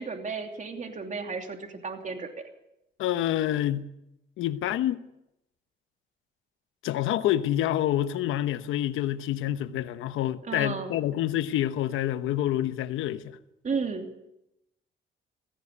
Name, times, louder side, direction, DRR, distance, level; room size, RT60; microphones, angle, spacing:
voice 1, 0.0-2.3 10.4-10.9 13.6-14.1, right 4 dB, 40° right, 3.0 m, -33 dB
voice 2, 3.0-3.9 4.4-5.0 6.8-13.4, left 12 dB, 90° left, 1.1 m, -27 dB
16.5 x 16.5 x 9.6 m
cardioid pair, 90°, 20 cm